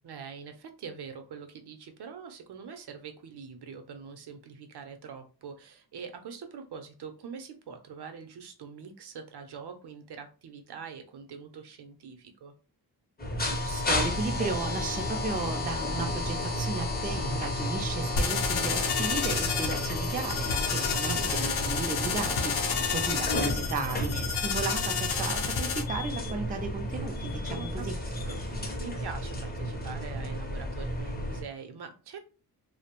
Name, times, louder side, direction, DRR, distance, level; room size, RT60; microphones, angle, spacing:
voice 1, 0.0-12.5 20.9-21.2 27.5-27.9 28.2-32.2, right 6 dB, 75° right, 0.6 m, -43 dB
sound 1, 13.2-31.4, left 1 dB, 25° left, 0.6 m, -32 dB
voice 2, 13.6-28.0, right 3 dB, 25° right, 0.3 m, -35 dB
sound 2, 18.2-25.8, left 6 dB, 70° left, 0.6 m, -30 dB
2.6 x 2.0 x 2.9 m
wide cardioid pair, 115°, 40 cm